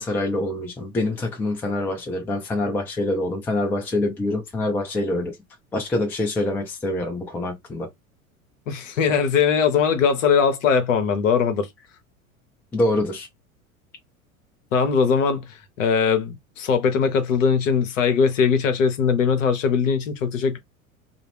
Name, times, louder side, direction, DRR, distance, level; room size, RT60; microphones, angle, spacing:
voice 1, 0.0-5.4 5.7-7.9 12.7-13.3, left 2 dB, 5° left, 0.4 m, -25 dB
voice 2, 8.7-11.7 14.7-20.6, left 6 dB, 65° left, 0.8 m, -20 dB
2.4 x 2.0 x 3.2 m
figure-of-eight pair, 80°, 42 cm